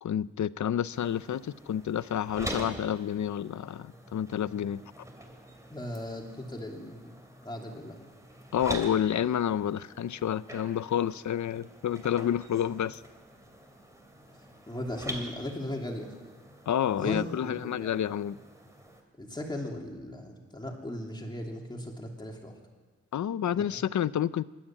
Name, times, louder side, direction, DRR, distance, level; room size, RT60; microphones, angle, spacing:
voice 1, 0.0-4.8 8.5-13.0 16.7-18.4 23.1-24.4, left 10 dB, 70° left, 17 dB, 0.6 m, -29 dB
sound 1, 0.9-19.0, right 1 dB, 10° right, 2.9 m, -45 dB
voice 2, 5.7-7.1 7.4-8.0 14.7-16.1 17.0-18.1 19.2-22.5 23.5-23.8, left 1 dB, 15° left, 0 dB, 2.9 m, -37 dB
26.5 x 12.5 x 8.7 m, 1.4 s
wide cardioid pair, 175°, 30 cm